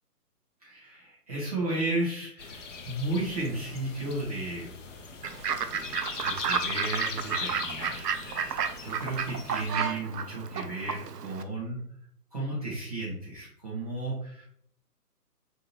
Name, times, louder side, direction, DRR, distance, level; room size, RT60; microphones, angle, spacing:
voice 1, 0.6-4.7 5.2-5.3 5.7-11.8 12.3-14.4, right 2 dB, 25° right, -7 dB, 0.6 m, -34 dB
sound 1, 2.4-9.8, left 4 dB, 50° left, 0.5 m, -40 dB
Fowl / Bird, 5.2-11.4, right 7 dB, 75° right, 0.5 m, -32 dB
3.5 x 2.6 x 2.9 m, 0.67 s
figure-of-eight pair, 135°, 48 cm